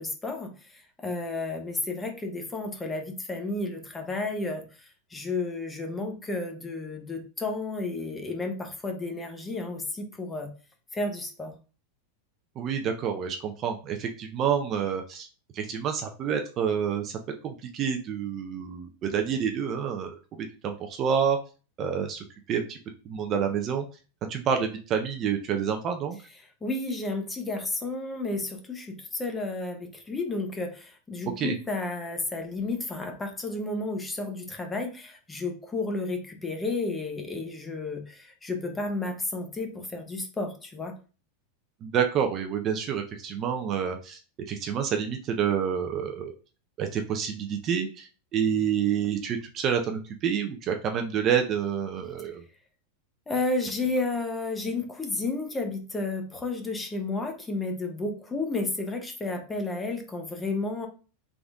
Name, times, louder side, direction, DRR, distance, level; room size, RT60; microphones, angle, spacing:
voice 1, 0.0-10.5 10.9-11.5 26.6-40.9 53.3-60.9, left 2 dB, 10° left, 4 dB, 0.8 m, -32 dB
voice 2, 12.6-15.3 15.5-17.2 17.4-21.4 21.8-22.8 23.1-23.8 24.3-26.2 31.4-31.6 41.8-44.2 44.5-46.3 46.8-52.4, right 7 dB, 30° right, 4 dB, 0.5 m, -28 dB
3.9 x 3.6 x 3.5 m, 0.36 s
supercardioid pair, 155°, 0 cm